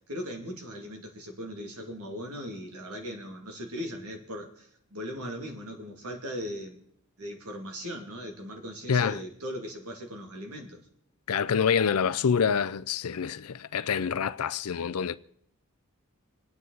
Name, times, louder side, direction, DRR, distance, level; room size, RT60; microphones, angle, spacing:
voice 1, 0.1-6.8 7.2-10.8, equal, 90° right, 2.4 m, -38 dB
voice 2, 8.9-9.2 11.3-15.2, left 6 dB, 85° left, 0.5 m, -26 dB
27.0 x 9.7 x 4.0 m
head